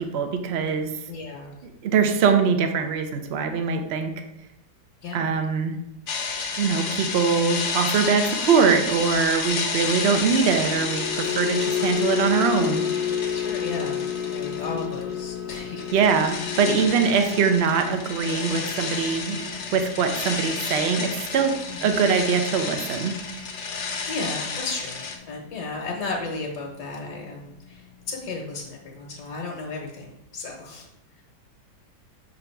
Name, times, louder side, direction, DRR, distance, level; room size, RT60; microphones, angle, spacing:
voice 1, 0.0-0.9 1.8-4.1 5.1-5.8 6.6-12.8 15.9-19.4 19.7-23.2, right 5 dB, 70° right, 6 dB, 0.6 m, -22 dB
voice 2, 1.1-1.6 5.0-5.3 9.7-9.9 13.3-14.0 14.3-16.4 21.7-22.0 24.1-30.9, left 3 dB, 75° left, 0 dB, 1.6 m, -34 dB
sound 1, 6.1-15.2 15.4-25.2, left 4 dB, 55° left, 0.9 m, -31 dB
sound 2, 10.2-26.6 27.0-27.3 27.6-27.8, left 8 dB, 90° left, 1.2 m, -32 dB
5.9 x 3.9 x 4.4 m, 0.85 s
omnidirectional pair, 1.8 m